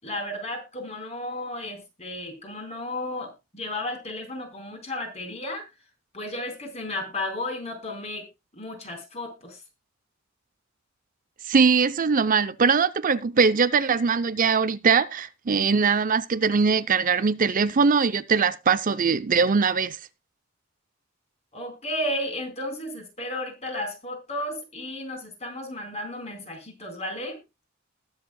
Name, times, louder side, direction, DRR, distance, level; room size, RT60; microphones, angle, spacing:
voice 1, 0.0-5.6 6.1-8.3 8.5-9.6 21.5-27.4, left 1 dB, 35° left, 4.2 m, -33 dB
voice 2, 11.4-20.0, right 5 dB, 40° right, 0.6 m, -21 dB
20.0 x 7.3 x 2.2 m
head